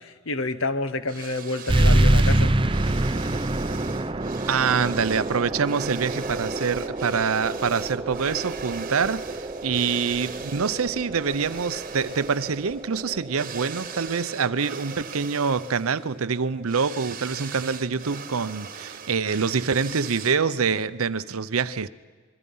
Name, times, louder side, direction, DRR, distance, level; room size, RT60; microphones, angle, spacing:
voice 1, 0.0-2.5, left 2 dB, 70° left, 1.2 m, -28 dB
sound 1, 1.1-20.6, right 7 dB, 40° right, 1.3 m, -41 dB
sound 2, 1.7-16.8, right 1 dB, 25° right, 0.6 m, -27 dB
voice 2, 4.5-21.9, right 5 dB, 90° right, 0.7 m, -25 dB
27.5 x 22.5 x 5.5 m
head